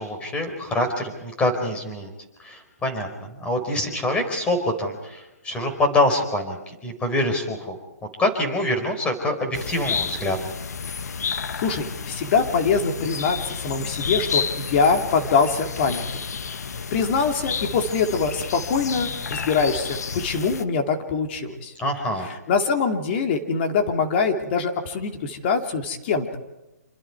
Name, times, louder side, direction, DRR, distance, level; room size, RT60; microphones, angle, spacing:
voice 1, 0.0-2.1 2.4-7.8 8.0-10.5 21.8-22.3, left 1 dB, 10° left, 5 dB, 4.4 m, -25 dB
sound 1, 9.5-20.6, left 6 dB, 75° left, 1.1 m, -31 dB
voice 2, 11.6-16.0 16.9-21.7 22.5-26.4, left 5 dB, 40° left, 4 dB, 2.8 m, -23 dB
27.0 x 25.0 x 4.8 m, 0.96 s
hypercardioid pair, 140°, 9 cm